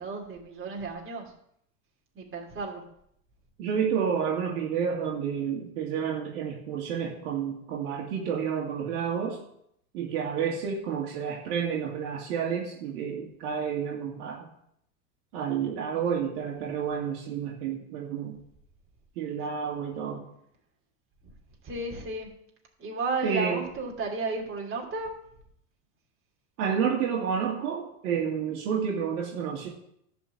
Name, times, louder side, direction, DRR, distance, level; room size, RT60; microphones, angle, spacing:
voice 1, 0.0-1.3 2.1-2.8 21.6-22.3 22.8-25.1, right 3 dB, 25° right, -1 dB, 3.2 m, -33 dB
voice 2, 3.6-9.4 9.9-14.5 15.3-18.3 19.2-20.2 23.2-23.6 26.6-29.7, right 7 dB, 70° right, -2 dB, 2.2 m, -30 dB
11.0 x 4.6 x 7.8 m, 0.72 s
hypercardioid pair, 105°, 46 cm